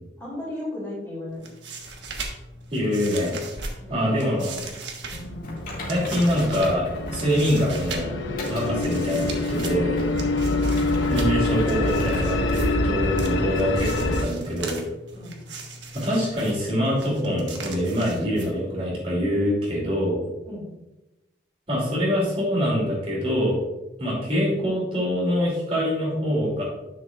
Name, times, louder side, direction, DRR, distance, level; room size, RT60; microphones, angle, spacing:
voice 1, 0.2-1.5 3.8-4.3 4.6-4.7 5.1-5.6 15.1-15.4 20.4-20.6, left 1 dB, 15° left, -6 dB, 2.6 m, -36 dB
sound 1, 1.3-18.9, right 3 dB, 70° right, 1.2 m, -39 dB
voice 2, 2.7-3.4 3.9-4.5 5.9-6.8 7.1-8.1 8.5-10.0 11.1-14.8 15.9-20.2 21.7-23.6 24.0-26.6, equal, 30° right, -5 dB, 2.7 m, -24 dB
sound 2, 5.1-14.2, left 2 dB, 90° left, 0.9 m, -26 dB
Typing, 5.4-7.8 8.4-8.7 9.2-9.3 9.8-11.7 12.0-12.2 12.6-12.7 13.2-13.3, left 2 dB, 50° left, 2.1 m, -39 dB
10.0 x 6.5 x 2.4 m, 0.99 s
head